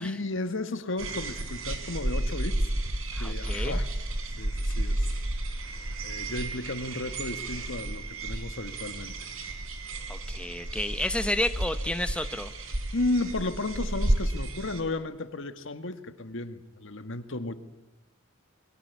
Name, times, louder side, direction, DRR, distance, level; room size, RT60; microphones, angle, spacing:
voice 1, 0.0-2.7 3.2-3.9 4.4-5.3 6.0-9.3 12.9-17.5, left 2 dB, 65° left, 10 dB, 1.8 m, -34 dB
sound 1, 1.0-14.8, right 1 dB, 75° right, 4.4 m, -32 dB
voice 2, 3.1-3.8 10.1-12.5, left 1 dB, 5° left, 9 dB, 0.9 m, -31 dB
29.0 x 22.5 x 8.3 m, 0.98 s
head